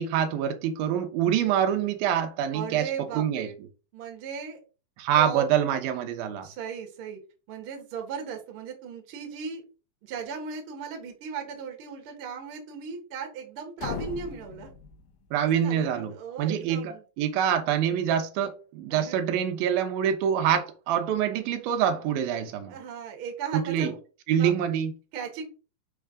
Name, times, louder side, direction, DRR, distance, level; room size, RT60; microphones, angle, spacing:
voice 1, 0.0-3.5 5.0-6.5 15.3-16.1 16.4-22.7 23.5-23.9 24.3-24.9, right 9 dB, 90° right, 2.7 m, -25 dB
voice 2, 2.5-3.5 3.9-4.6 5.1-5.5 6.4-7.2 7.5-9.6 10.0-14.7 15.5-17.0 18.9-19.3 22.7-24.0 24.4-24.5 25.1-25.4, right 6 dB, 55° right, 1.7 m, -37 dB
sound 1, 13.8-15.7, left 6 dB, 90° left, 2.7 m, -38 dB
6.5 x 3.4 x 4.9 m
omnidirectional pair, 4.1 m